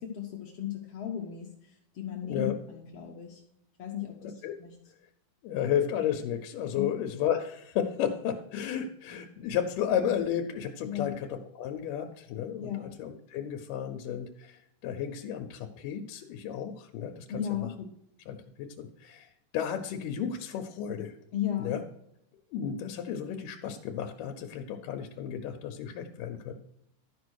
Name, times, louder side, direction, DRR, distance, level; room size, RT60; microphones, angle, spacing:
voice 1, 0.0-3.4 3.8-4.7 6.8-6.9 10.8-11.1 12.6-12.9 17.3-17.8 21.3-21.7, left 10 dB, 65° left, 2 dB, 1.8 m, -35 dB
voice 2, 2.2-2.5 4.4-4.5 5.4-17.3 17.6-17.7 18.3-21.1 21.6-21.8 22.5-26.5, left 9 dB, 85° left, 4 dB, 2.4 m, -33 dB
12.5 x 5.1 x 6.3 m, 0.77 s
omnidirectional pair, 3.7 m